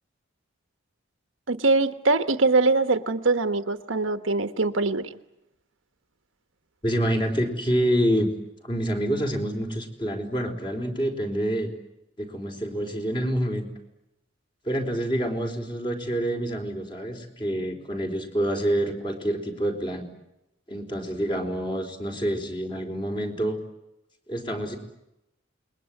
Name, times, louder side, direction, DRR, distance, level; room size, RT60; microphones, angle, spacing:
voice 1, 1.5-5.1, right 3 dB, 80° right, 10 dB, 1.3 m, -23 dB
voice 2, 6.8-8.3 8.6-11.7 12.2-13.7 14.6-20.1 20.7-23.6 24.3-24.8, equal, 25° left, 3 dB, 4.3 m, -27 dB
28.5 x 21.5 x 9.2 m, 0.88 s
head